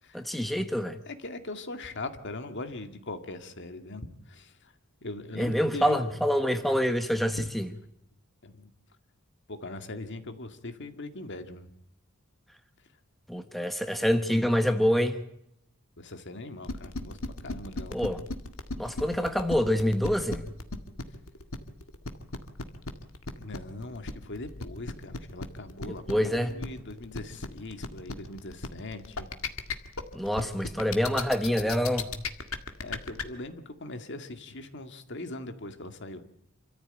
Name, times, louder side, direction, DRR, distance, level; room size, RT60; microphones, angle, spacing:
voice 1, 0.1-1.0 5.4-7.7 13.3-15.2 17.9-18.2 18.8-20.5 25.8-26.5 30.1-32.1, equal, ahead, 1.3 m, -26 dB
voice 2, 1.1-4.7 5.0-6.1 7.4-7.5 8.4-8.7 9.5-11.7 16.0-17.2 17.4-18.0 23.4-29.3 32.8-36.2, left 2 dB, 60° left, 2.1 m, -40 dB
sound 1, 16.6-33.2, left 3 dB, 75° left, 1.9 m, -35 dB
27.0 x 14.5 x 8.9 m
head